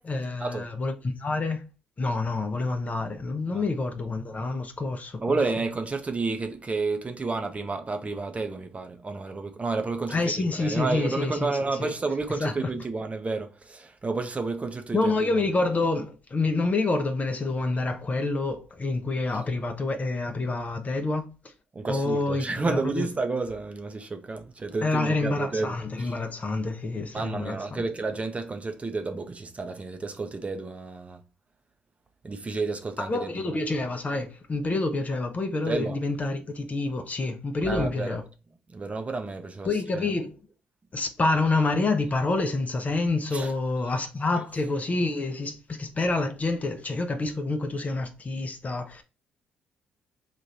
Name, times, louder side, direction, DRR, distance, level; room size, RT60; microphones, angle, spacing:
voice 1, 0.0-1.6 2.0-5.4 10.1-11.5 11.8-11.9 12.4-12.7 14.9-21.5 21.9-23.1 24.8-27.8 33.0-38.2 39.6-40.4 40.9-49.0, left 3 dB, 35° left, 0.7 m, -28 dB
voice 2, 5.2-15.4 21.7-26.1 27.1-31.2 32.2-33.6 35.7-36.0 37.6-38.2 38.7-39.7 39.9-40.1 43.3-43.5, right 3 dB, 30° right, 0.7 m, -31 dB
3.1 x 2.5 x 3.9 m
hypercardioid pair, 50°, 4 cm